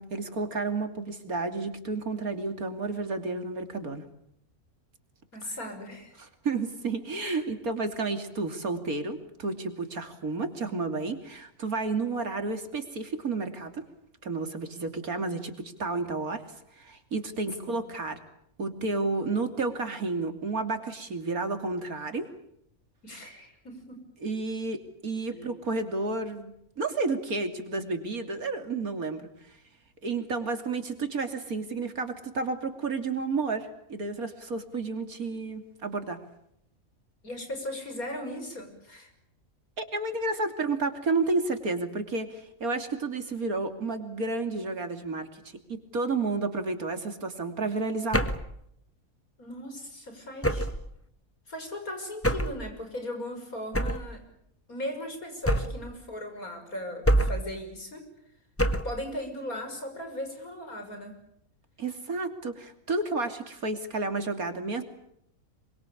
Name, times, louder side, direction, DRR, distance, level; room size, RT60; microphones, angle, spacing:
voice 1, 0.0-4.0 5.4-5.6 6.4-13.8 14.2-16.4 16.7-18.2 18.6-22.3 24.2-29.6 30.0-36.2 39.8-45.4 45.7-48.2 61.8-64.8, right 3 dB, 80° right, 7 dB, 3.3 m, -31 dB
voice 2, 5.3-6.1 7.2-7.4 17.7-17.8 23.0-24.0 25.3-25.5 37.2-39.1 49.4-50.7 51.5-54.2 54.7-58.1 58.8-61.1, left 1 dB, 80° left, 6 dB, 6.6 m, -38 dB
sound 1, 48.1-48.5 50.4-50.9 52.2-52.6 53.7-54.1 55.5-55.9 57.1-57.5 58.6-59.0, right 1 dB, 10° left, 1.3 m, -25 dB
26.5 x 24.5 x 8.6 m, 0.73 s
omnidirectional pair, 1.5 m